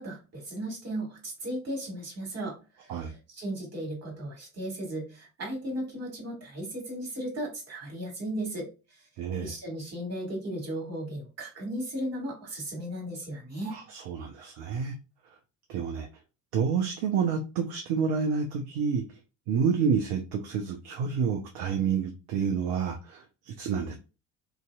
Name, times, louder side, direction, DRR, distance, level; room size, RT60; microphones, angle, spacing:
voice 1, 0.0-8.7 9.4-13.8, right 1 dB, 35° right, 1.6 m, -36 dB
voice 2, 9.2-9.5 13.7-14.9 15.7-16.1 16.5-19.0 19.5-24.0, right 6 dB, 55° right, 0.6 m, -29 dB
2.9 x 2.6 x 2.2 m
figure-of-eight pair, 50°, 46 cm